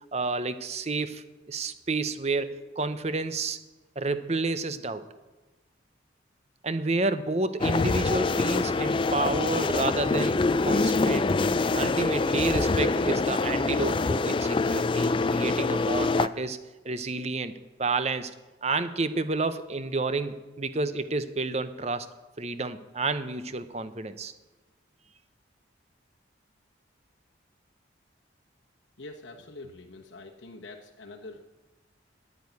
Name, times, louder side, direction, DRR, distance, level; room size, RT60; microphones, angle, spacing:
voice 1, 0.1-3.6 4.0-5.0 6.6-11.3 11.7-16.6 16.8-17.5 17.8-18.3 18.6-22.1 22.4-24.3, right 3 dB, 35° right, 12 dB, 0.8 m, -30 dB
sound 1, 7.6-16.3, left 3 dB, 25° left, 0.3 m, -25 dB
voice 2, 29.0-31.4, left 2 dB, 80° left, 0 dB, 1.2 m, -45 dB
10.5 x 10.0 x 9.4 m, 1.1 s
head